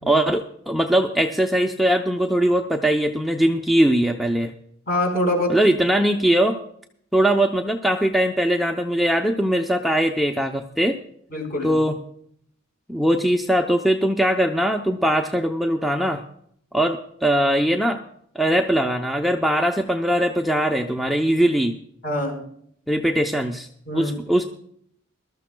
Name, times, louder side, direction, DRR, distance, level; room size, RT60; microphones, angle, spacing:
voice 1, 0.1-4.5 5.5-6.6 7.1-11.0 11.6-12.0 12.9-16.2 16.7-18.0 18.3-21.8 22.9-23.7 23.9-24.4, right 1 dB, ahead, 2 dB, 0.6 m, -21 dB
voice 2, 4.9-5.5 11.3-11.7 22.0-22.4 23.9-24.1, left 1 dB, 45° left, 1 dB, 4.6 m, -24 dB
21.5 x 13.0 x 2.2 m, 0.66 s
head